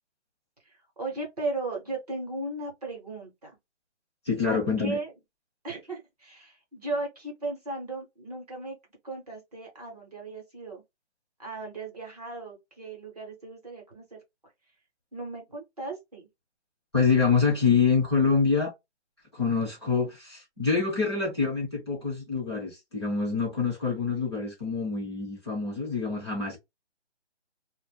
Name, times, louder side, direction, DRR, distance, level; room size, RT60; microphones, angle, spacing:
voice 1, 0.7-3.5 4.4-5.1 5.6-8.8 9.0-10.8 11.4-14.2 15.1-16.3, right 2 dB, 35° right, 0.8 m, -36 dB
voice 2, 4.2-5.0 16.9-18.7 19.3-26.6, left 5 dB, 25° left, 0.8 m, -26 dB
2.1 x 2.1 x 3.1 m
hypercardioid pair, 170°, 35 cm